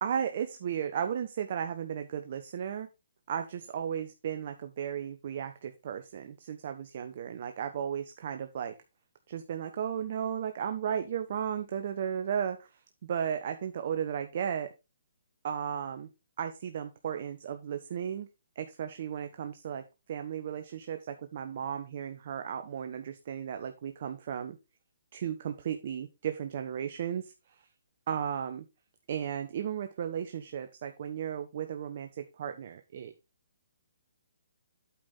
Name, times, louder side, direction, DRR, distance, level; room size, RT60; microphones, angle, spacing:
voice 1, 0.0-2.9 3.3-8.7 9.3-12.7 13.0-14.7 15.4-16.1 16.4-18.3 18.6-19.8 20.1-24.6 25.1-27.3 28.1-28.6 29.1-33.1, right 8 dB, 50° right, 8 dB, 0.9 m, -35 dB
8.5 x 5.4 x 4.0 m, 0.26 s
hypercardioid pair, 140°, 0 cm